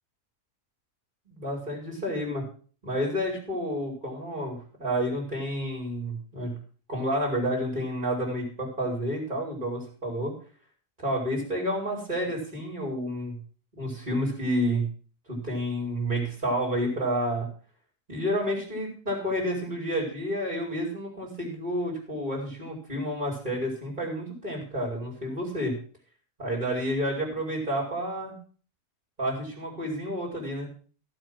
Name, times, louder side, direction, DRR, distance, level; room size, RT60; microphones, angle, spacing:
voice 1, 1.3-2.4 2.8-6.6 6.9-10.3 11.0-13.4 13.7-14.9 15.3-17.5 18.1-25.8 26.4-28.4 29.2-30.7, equal, 15° right, -3 dB, 4.6 m, -30 dB
16.0 x 7.9 x 6.1 m, 0.42 s
omnidirectional pair, 3.8 m